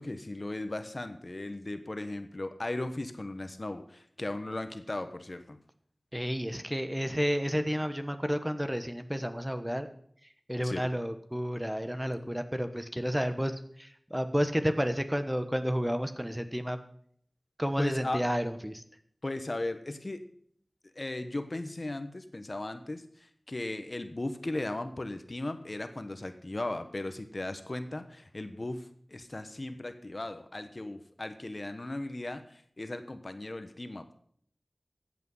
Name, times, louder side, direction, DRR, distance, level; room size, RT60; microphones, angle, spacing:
voice 1, 0.0-5.6 10.6-10.8 17.8-18.2 19.2-20.2 20.9-34.2, left 2 dB, 50° left, 9 dB, 1.1 m, -37 dB
voice 2, 6.1-9.9 10.5-16.8 17.6-18.8, equal, 10° right, 9 dB, 1.1 m, -31 dB
14.5 x 8.4 x 5.5 m, 0.64 s
wide cardioid pair, 55°, 0 cm